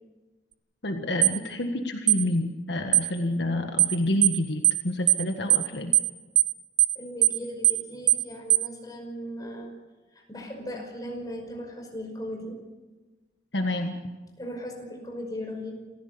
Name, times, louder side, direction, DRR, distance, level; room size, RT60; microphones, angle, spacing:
voice 1, 0.8-5.9 13.5-14.0, left 1 dB, 70° left, 4 dB, 1.6 m, -28 dB
sound 1, 1.2-1.4 2.1-2.2 2.9-3.1 3.8-3.9 4.2-4.4 4.6-4.8 5.1-5.2 5.5-5.7 5.9-6.1 6.4-6.5 6.8-6.9 7.2-7.4 7.6-7.8 8.1-8.2 8.5-8.7, right 15 dB, 80° right, 0.8 m, -20 dB
voice 2, 7.0-9.7 10.1-12.6 14.4-15.7, equal, 20° left, 2 dB, 5.4 m, -37 dB
28.0 x 15.0 x 6.9 m, 1.2 s
head